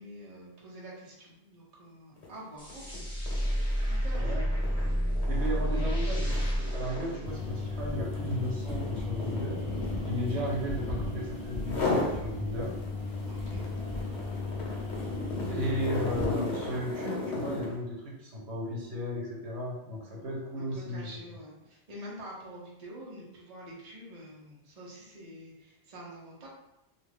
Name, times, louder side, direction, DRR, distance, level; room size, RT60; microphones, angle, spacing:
voice 1, 0.0-3.1 3.9-4.3 5.0-5.2 13.3-13.7 20.6-26.5, right 1 dB, 40° right, -5 dB, 0.8 m, -47 dB
sound 1, 2.2-2.4 2.7-11.2 11.6-12.2 12.6-17.8, left 2 dB, 80° left, 1.0 m, -36 dB
sound 2, 2.6-7.9, equal, 5° left, 0.7 m, -30 dB
voice 2, 4.2-4.5 5.3-9.6 10.1-12.7 15.5-21.1, equal, 75° right, -3 dB, 1.1 m, -35 dB
sound 3, 7.3-16.3, left 3 dB, 55° left, 0.8 m, -35 dB
2.4 x 2.4 x 3.3 m, 0.90 s
omnidirectional pair, 1.1 m